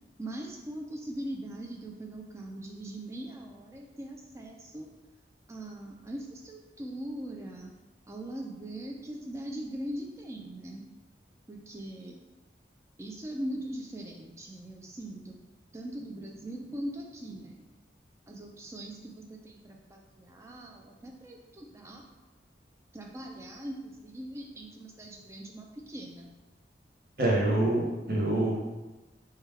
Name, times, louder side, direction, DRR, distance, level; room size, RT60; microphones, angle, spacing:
voice 1, 0.2-4.9 5.5-7.7 8.1-10.8 11.5-12.2 13.0-15.4 15.7-17.6 18.3-22.1 22.9-26.3, right 1 dB, 15° right, 0 dB, 0.3 m, -41 dB
voice 2, 27.2-28.6, right 1 dB, 50° right, -3 dB, 0.7 m, -26 dB
3.3 x 2.2 x 3.3 m, 1.1 s
head